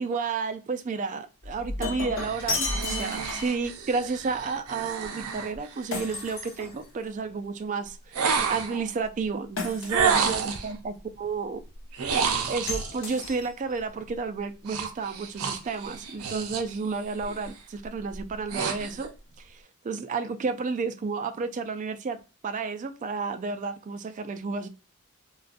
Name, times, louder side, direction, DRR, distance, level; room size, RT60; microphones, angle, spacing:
voice 1, 0.0-11.6 12.5-19.1 19.4-24.7, right 4 dB, 35° right, 0.3 m, -31 dB
Shatter, 1.4-3.7 5.9-7.2 9.6-10.4 12.7-13.8, left 3 dB, 60° left, 1.0 m, -33 dB
sound 1, 2.2-6.4 8.1-8.9 9.9-10.7 11.9-13.0 14.7-16.8 17.1-17.5 18.0-19.1, right 6 dB, 80° right, 0.6 m, -30 dB
3.9 x 2.2 x 2.4 m
head